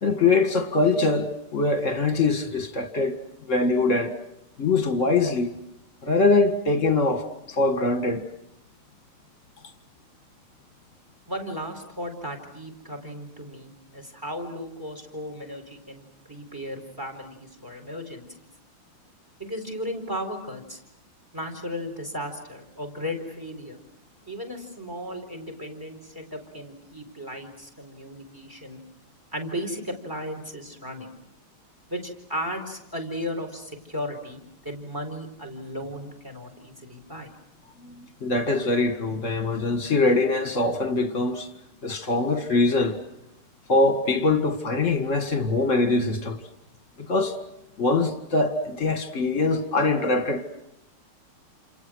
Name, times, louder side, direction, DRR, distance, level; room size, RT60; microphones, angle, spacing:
voice 1, 0.0-3.2 3.5-4.1 4.6-5.5 6.0-8.2 37.8-41.5 41.8-43.0 43.7-46.4 47.1-47.4 47.8-50.5, left 3 dB, 35° left, 2.2 m, -23 dB
voice 2, 11.3-18.5 19.4-20.8 21.3-23.8 24.2-28.8 29.3-31.1 31.9-37.3, equal, 10° right, 4.2 m, -35 dB
29.0 x 28.5 x 6.4 m
omnidirectional pair, 2.3 m